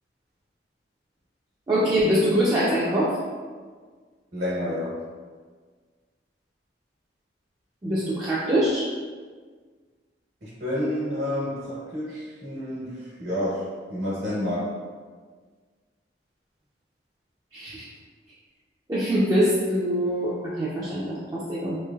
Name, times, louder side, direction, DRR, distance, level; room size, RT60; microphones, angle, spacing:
voice 1, 1.7-3.2 7.8-8.9 17.5-17.8 18.9-21.8, equal, 20° right, -8 dB, 0.3 m, -23 dB
voice 2, 4.3-5.0 10.4-14.7, left 1 dB, 75° right, -10 dB, 1.1 m, -29 dB
3.1 x 2.6 x 2.3 m, 1.5 s
head